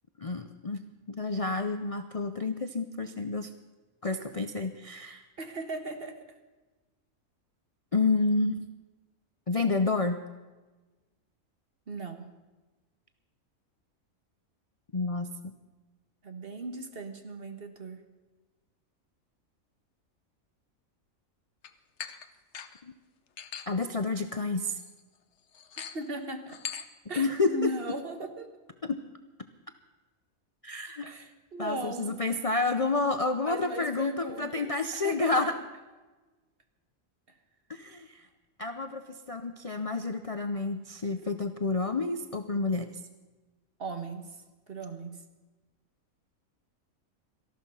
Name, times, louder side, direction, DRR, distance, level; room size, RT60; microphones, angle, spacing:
voice 1, 0.2-0.8 1.1-3.5 4.0-5.3 7.9-8.6 9.5-10.2 14.9-15.5 22.8-22.9 23.7-24.8 27.2-27.7 28.8-29.0 30.6-31.2 31.6-35.5 37.7-38.3 38.6-42.9, left 3 dB, 35° left, 8 dB, 0.6 m, -29 dB
voice 2, 5.4-6.3 11.9-12.3 16.2-18.0 25.9-26.6 27.1-28.6 31.0-32.2 33.4-35.4 43.8-44.4 44.7-45.2, right 2 dB, 45° right, 7 dB, 1.5 m, -38 dB
sound 1, 21.6-21.7 22.0-22.3 22.5-22.8 23.4-23.7 24.1-24.2 24.6-24.9 25.5-26.1 26.5-26.8, left 8 dB, 60° left, 1.1 m, -40 dB
18.0 x 14.0 x 5.5 m, 1.2 s
omnidirectional pair, 1.5 m